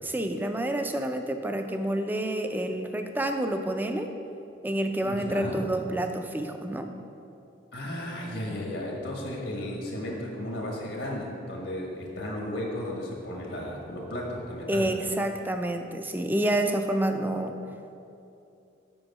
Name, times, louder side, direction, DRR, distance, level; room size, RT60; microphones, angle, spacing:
voice 1, 0.0-4.1 4.6-6.9 14.7-17.5, right 1 dB, 10° right, 5 dB, 0.4 m, -28 dB
voice 2, 5.0-5.6 7.7-14.8, left 1 dB, 80° left, -2 dB, 1.4 m, -34 dB
7.8 x 5.4 x 5.4 m, 2.7 s
head